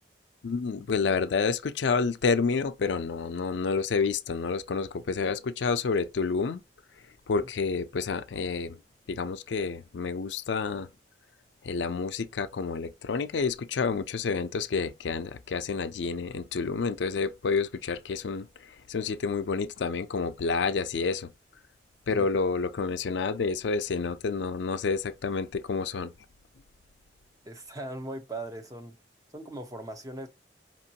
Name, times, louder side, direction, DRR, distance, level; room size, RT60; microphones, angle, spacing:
voice 1, 0.4-6.6 7.3-8.8 9.1-10.9 11.6-21.3 22.1-26.1, left 4 dB, 90° left, 0.5 m, -29 dB
voice 2, 27.5-29.0 29.3-30.3, right 2 dB, 20° right, 0.7 m, -39 dB
5.1 x 3.0 x 2.8 m
head